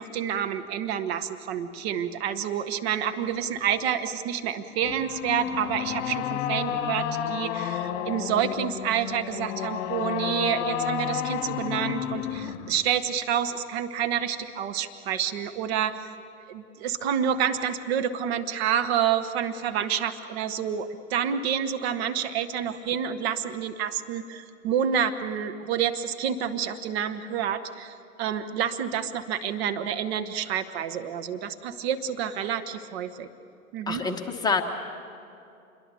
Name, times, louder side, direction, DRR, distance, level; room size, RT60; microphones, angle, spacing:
voice 1, 0.0-16.0 16.5-33.3 33.7-34.0, right 8 dB, 45° right, 9 dB, 1.4 m, -28 dB
sound 1, 4.8-12.8, left 9 dB, 35° left, 2.2 m, -31 dB
voice 2, 33.9-34.6, left 4 dB, 10° left, 2 dB, 1.3 m, -26 dB
28.0 x 22.5 x 6.9 m, 2.7 s
figure-of-eight pair, 115°, 43 cm